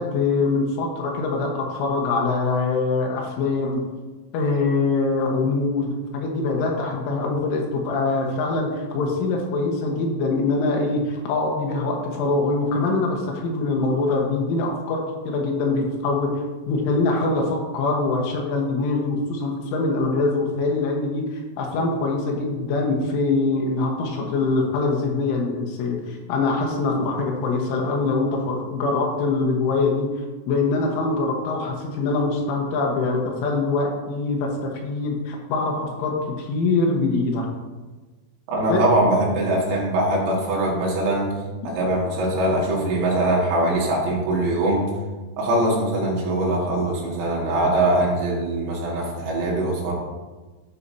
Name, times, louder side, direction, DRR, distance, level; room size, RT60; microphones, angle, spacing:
voice 1, 0.0-3.8 4.3-21.3 21.6-30.1 30.5-37.5 38.7-38.8, left 3 dB, 80° left, 0 dB, 3.6 m, -23 dB
voice 2, 38.5-41.3 41.6-44.9 45.4-49.9, right 1 dB, 85° right, -4 dB, 4.8 m, -22 dB
11.5 x 8.3 x 2.8 m, 1.3 s
omnidirectional pair, 5.8 m